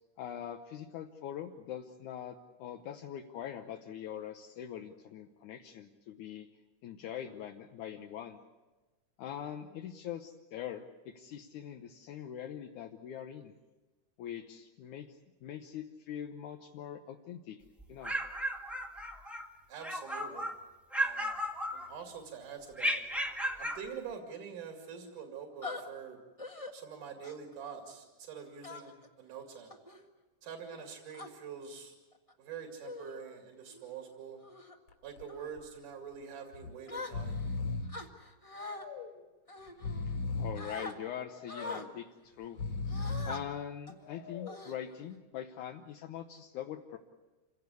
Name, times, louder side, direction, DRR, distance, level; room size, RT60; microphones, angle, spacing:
voice 1, 0.2-6.5 6.8-8.4 9.2-13.5 14.2-17.6 17.9-18.1 40.0-42.6 43.3-47.0, left 9 dB, 75° left, 4 dB, 2.4 m, -43 dB
sound 1, 17.8-19.5 19.8-20.6 20.9-22.2 22.8-23.9, equal, ahead, 0.4 m, -35 dB
voice 2, 19.7-20.5 21.0-21.4 21.7-23.0 23.6-26.2 26.7-29.7 30.4-32.0 32.4-34.4 35.0-37.5, right 6 dB, 80° right, 3 dB, 3.9 m, -45 dB
sound 2, 25.6-25.8 26.4-26.7 27.2-27.5 28.6-29.1 29.7-30.0 30.7-31.3 32.1-32.3 32.8-33.2 33.7-33.9 34.4-34.8 35.3-35.5 36.9-37.5 37.9-38.8 39.5-40.3 40.6-40.9 41.5-41.9 42.9-43.4 43.9-44.0 44.5-45.1, left 3 dB, 25° left, 0.8 m, -43 dB
Breathing, 34.9-35.2 35.6-35.7 36.5-36.7 37.0-38.0 38.6-39.2 39.7-40.7 41.3-41.9 42.4-43.4 44.0-44.7, left 4 dB, 55° left, 3.6 m, -38 dB
27.0 x 17.0 x 8.3 m, 1.2 s
omnidirectional pair, 3.6 m